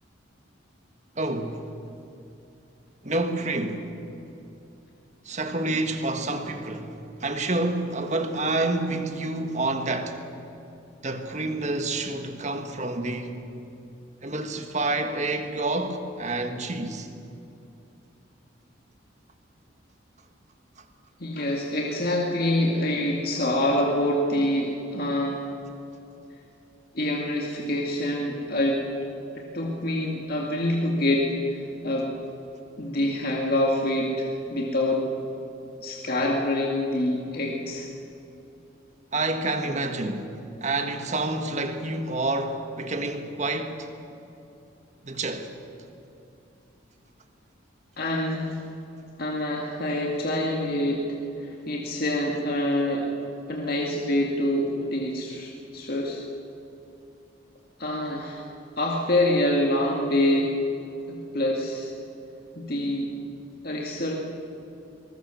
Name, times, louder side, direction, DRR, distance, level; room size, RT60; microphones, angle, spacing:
voice 1, 1.2-1.6 3.0-3.9 5.3-10.2 11.0-13.4 14.2-17.1 39.1-40.3 40.6-43.9 45.0-45.5, right 2 dB, 35° right, 1.7 m, -28 dB
voice 2, 21.2-25.4 26.9-28.9 29.3-31.6 31.8-32.1 32.8-35.1 35.8-37.9 48.0-48.6 49.2-51.1 51.4-53.1 53.5-56.2 57.8-58.4 58.8-60.5 61.1-61.9 62.6-63.1 63.6-64.2, left 1 dB, 50° left, 2.2 m, -26 dB
23.0 x 20.5 x 7.2 m
head